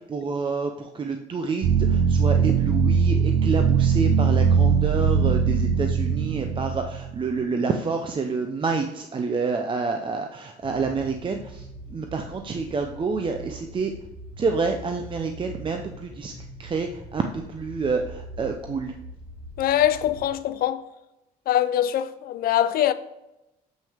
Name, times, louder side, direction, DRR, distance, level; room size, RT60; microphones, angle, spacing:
voice 1, 0.0-13.9 14.4-16.3 16.6-18.9, right 4 dB, 30° right, 0.7 m, -28 dB
sound 1, 1.6-7.4, right 6 dB, 75° right, 0.7 m, -21 dB
sound 2, 10.6-20.3, equal, 5° right, 2.1 m, -42 dB
voice 2, 19.6-20.8 21.5-22.9, left 11 dB, 60° left, 0.6 m, -23 dB
7.6 x 5.9 x 3.5 m
cardioid pair, 110°, 17 cm